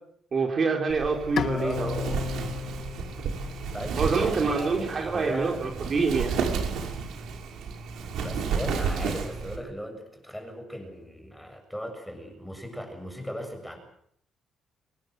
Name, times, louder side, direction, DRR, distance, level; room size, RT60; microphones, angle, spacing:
voice 1, 0.3-2.0 4.0-6.3, right 4 dB, 35° right, 2 dB, 4.0 m, -26 dB
Wind, 0.9-9.6, right 5 dB, 70° right, 5.9 m, -32 dB
Bowed string instrument, 1.4-4.6, left 7 dB, 50° left, 1.5 m, -34 dB
voice 2, 1.5-2.0 3.7-5.6 8.0-13.8, equal, ahead, 5 dB, 7.2 m, -38 dB
25.0 x 21.0 x 8.0 m, 0.68 s
cardioid pair, 140°, 0 cm